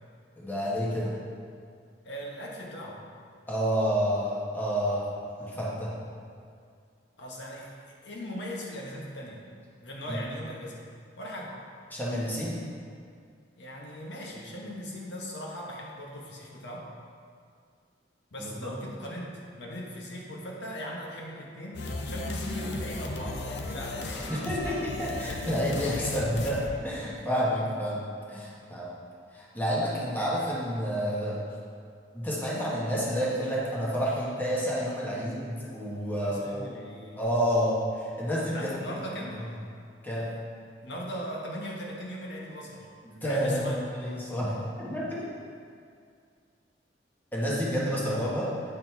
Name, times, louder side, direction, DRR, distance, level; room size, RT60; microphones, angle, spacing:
voice 1, 0.4-1.1 3.5-5.1 5.4-5.9 10.1-10.2 11.9-12.6 18.4-18.7 24.3-28.9 29.3-31.4 32.1-36.7 37.2-38.7 40.0-40.3 43.0-45.3 47.3-48.5, equal, 10° left, -7 dB, 1.4 m, -29 dB
voice 2, 2.0-3.0 7.2-9.4 9.8-10.8 11.2-11.6 13.6-16.9 18.3-24.8 36.2-37.2 38.5-39.5 40.8-42.9 43.2-44.2, equal, 85° left, -2 dB, 1.2 m, -39 dB
sound 1, 21.7-27.5, left 2 dB, 70° left, 0.6 m, -35 dB
9.1 x 4.0 x 4.6 m, 2.2 s
head